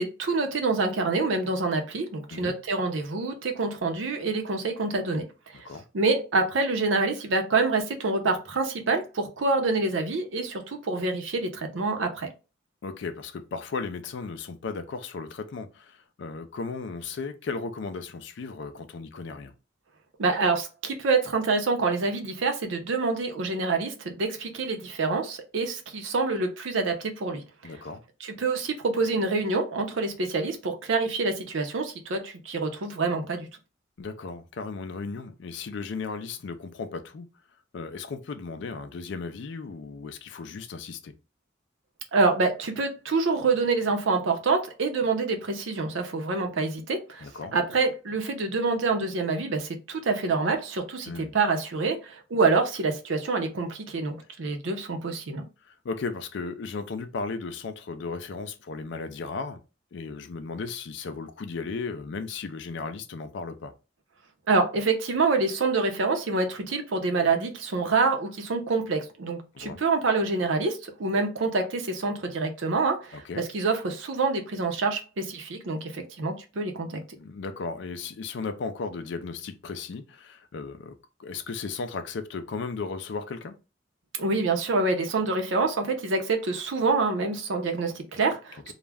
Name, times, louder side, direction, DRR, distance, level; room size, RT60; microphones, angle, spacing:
voice 1, 0.0-5.6 5.9-12.3 20.2-27.4 28.2-33.5 42.1-47.3 47.5-55.4 64.5-77.0 84.2-88.7, right 3 dB, 75° right, 0.6 m, -26 dB
voice 2, 12.8-19.5 27.6-28.0 34.0-37.3 37.7-41.1 47.2-47.5 51.1-51.3 55.7-59.6 59.9-63.7 69.5-69.8 73.1-73.4 77.2-83.6 88.7-88.8, left 4 dB, 65° left, 0.4 m, -35 dB
2.3 x 2.1 x 3.3 m
head